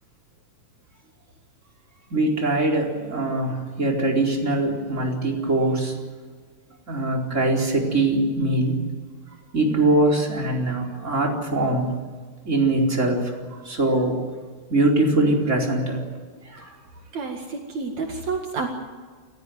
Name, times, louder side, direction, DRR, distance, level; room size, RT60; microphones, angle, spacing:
voice 1, 2.1-5.9 6.9-8.8 9.5-11.9 12.4-14.2 14.7-16.0 16.4-16.8, right 2 dB, 20° right, -1 dB, 4.7 m, -22 dB
voice 2, 17.1-18.7, right 4 dB, 65° right, 2 dB, 3.2 m, -29 dB
29.0 x 15.0 x 9.4 m, 1.5 s
omnidirectional pair, 3.6 m